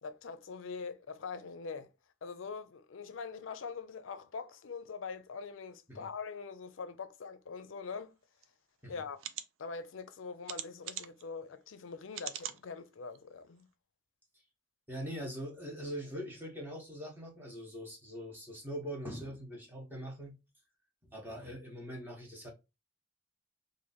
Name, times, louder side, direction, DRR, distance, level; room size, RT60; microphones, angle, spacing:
voice 1, 0.0-1.9 2.2-8.1 8.9-9.2 9.6-13.7, left 5 dB, 80° left, 0.5 m, -43 dB
sound 1, 8.4-8.5 9.2-9.5 10.5-11.2 12.1-12.6 13.2-13.3 13.6-13.7, right 10 dB, 85° right, 0.4 m, -41 dB
voice 2, 14.9-20.4 21.1-22.5, equal, 10° right, 1.2 m, -42 dB
3.0 x 2.6 x 4.1 m
head